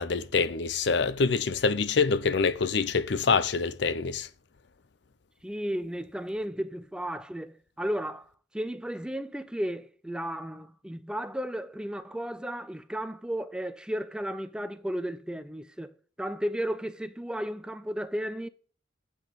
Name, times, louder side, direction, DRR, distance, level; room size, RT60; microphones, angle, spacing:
voice 1, 0.0-4.3, left 4 dB, 65° left, 0.6 m, -26 dB
voice 2, 5.4-8.3 8.5-15.9 16.2-18.5, equal, 5° right, 0.3 m, -34 dB
8.3 x 6.3 x 5.2 m
head